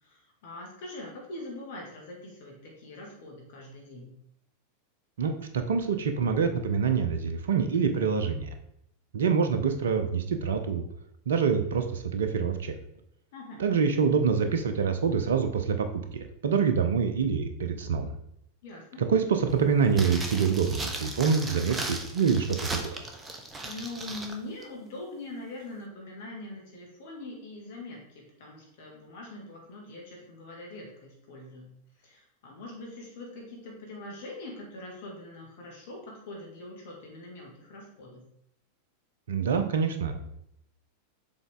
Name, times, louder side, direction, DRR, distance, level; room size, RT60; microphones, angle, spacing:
voice 1, 0.0-4.1 13.3-13.6 18.6-19.0 23.6-31.7 32.0-38.2, left 2 dB, 55° left, -1 dB, 2.2 m, -43 dB
voice 2, 5.2-8.5 9.1-10.8 11.3-12.7 13.6-15.9 16.1-18.1 19.0-22.9 39.3-40.4, right 6 dB, 65° right, 8 dB, 0.7 m, -26 dB
sound 1, 19.9-24.4 24.6-24.7, right 2 dB, 15° right, 0.9 m, -37 dB
7.2 x 4.0 x 3.7 m, 0.74 s
figure-of-eight pair, 90°, 0 cm